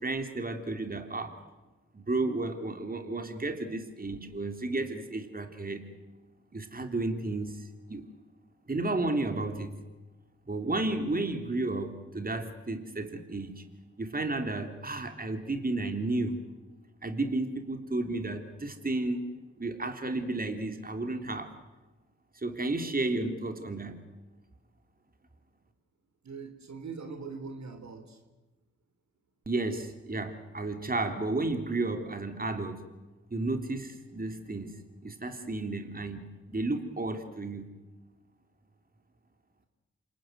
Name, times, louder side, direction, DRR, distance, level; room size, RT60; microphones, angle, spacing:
voice 1, 0.0-1.3 1.9-5.8 6.5-8.1 8.7-9.7 10.5-13.6 14.0-16.4 17.0-19.2 19.6-21.5 22.4-24.0 29.5-32.8 33.3-34.7 35.0-37.7, right 2 dB, 25° right, 6 dB, 3.5 m, -32 dB
voice 2, 26.2-28.2, right 4 dB, 55° right, 7 dB, 3.4 m, -42 dB
28.0 x 19.0 x 9.4 m, 1.1 s
hypercardioid pair, 40°, 33 cm